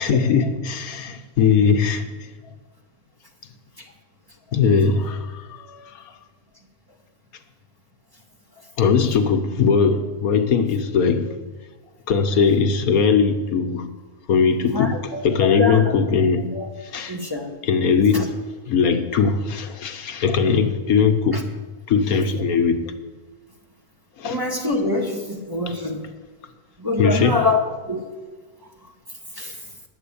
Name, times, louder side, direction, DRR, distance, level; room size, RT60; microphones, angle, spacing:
voice 1, 0.0-2.3 4.5-6.0 8.8-11.3 12.1-13.9 14.3-16.5 16.8-17.2 17.6-18.3 18.7-21.4 21.9-22.8 24.2-24.4 25.7-25.8 27.0-27.4, left 5 dB, 75° left, 1.4 m, -20 dB
voice 2, 14.7-16.0 16.5-16.7 17.1-17.5 18.1-18.3 21.3-21.4 24.2-26.0 26.8-28.0 28.6-28.7 29.3-29.6, left 3 dB, 15° right, 1.4 m, -25 dB
10.5 x 8.2 x 8.5 m
omnidirectional pair, 1.6 m